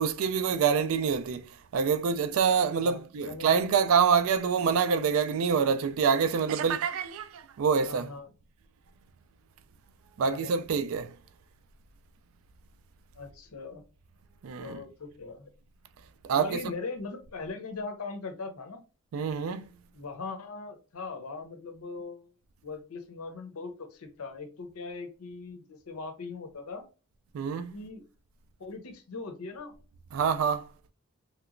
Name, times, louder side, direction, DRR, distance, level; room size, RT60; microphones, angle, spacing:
voice 1, 0.0-8.1 10.2-11.1 14.4-14.8 16.2-16.6 19.1-19.6 27.3-27.7 30.1-30.7, right 6 dB, 70° right, 0.3 m, -26 dB
voice 2, 2.8-3.6 7.8-8.3 10.2-10.5 13.2-13.8 14.6-15.5 16.3-18.8 19.9-22.3 22.6-26.9 27.7-28.0 28.6-29.7, left 4 dB, 85° left, 0.7 m, -40 dB
3.2 x 2.9 x 2.4 m
head